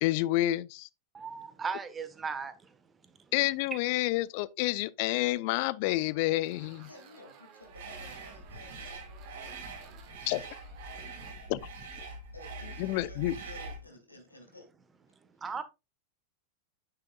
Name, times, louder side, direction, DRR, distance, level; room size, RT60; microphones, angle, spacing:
voice 1, 0.0-0.9 3.3-6.9 10.3-10.4 11.5-11.6 12.8-13.4, left 17 dB, 45° left, 0.5 m, -29 dB
voice 2, 1.1-2.7 15.4-15.6, right 5 dB, 15° right, 1.2 m, -37 dB
sound 1, 6.5-11.3, right 7 dB, 40° right, 2.0 m, -55 dB
voice 3, 6.9-9.0 9.3-10.0 12.3-14.7, left 2 dB, 85° left, 2.6 m, -53 dB
sound 2, 7.7-13.8, right 2 dB, 55° right, 3.8 m, -44 dB
9.8 x 6.6 x 2.3 m
figure-of-eight pair, 90°, 0 cm